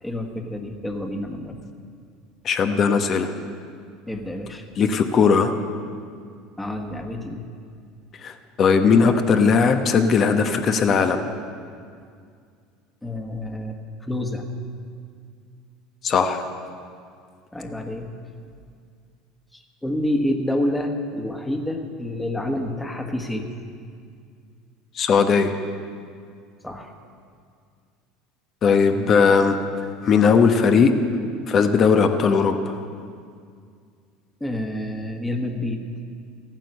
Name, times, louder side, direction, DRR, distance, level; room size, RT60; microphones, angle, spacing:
voice 1, 0.0-1.6 4.1-4.7 6.6-7.5 13.0-14.4 17.5-18.1 19.5-23.5 26.6-26.9 34.4-35.8, left 1 dB, 10° left, 4 dB, 1.6 m, -28 dB
voice 2, 2.4-3.3 4.8-5.5 8.2-11.2 16.0-16.5 24.9-25.5 28.6-29.6 30.0-30.9 31.5-32.8, left 5 dB, 45° left, 7 dB, 1.1 m, -18 dB
14.5 x 9.0 x 6.6 m, 2.2 s
hypercardioid pair, 85°, 0 cm